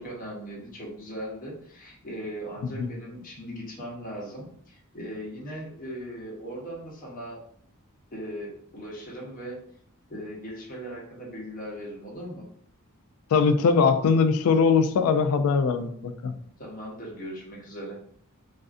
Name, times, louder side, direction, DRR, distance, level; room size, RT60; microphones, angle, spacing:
voice 1, 0.0-7.4 8.1-9.6 10.1-12.4 16.6-18.0, equal, 40° left, -3 dB, 0.8 m, -38 dB
voice 2, 13.3-16.3, left 5 dB, 80° left, 10 dB, 0.3 m, -21 dB
2.4 x 2.4 x 2.4 m, 0.64 s
head